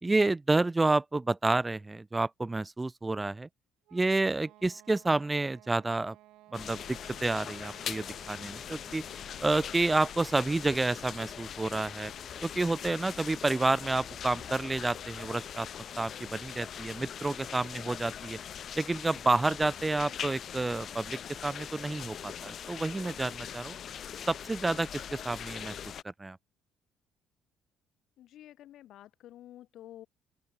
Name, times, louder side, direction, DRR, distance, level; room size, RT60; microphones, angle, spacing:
voice 1, 0.0-3.5 3.9-6.2 6.5-9.0 9.4-12.1 12.4-15.7 16.0-18.4 18.8-23.8 24.3-25.8 26.2-26.4, right 2 dB, 15° right, 0.8 m, -29 dB
sound 1, 3.9-16.7, right 16 dB, 80° right, 3.6 m, -59 dB
sound 2, 6.5-26.0, left 9 dB, 50° left, 0.7 m, -42 dB
voice 2, 28.2-30.1, left 13 dB, 70° left, 1.8 m, -50 dB
open air
cardioid pair, 100°, 0 cm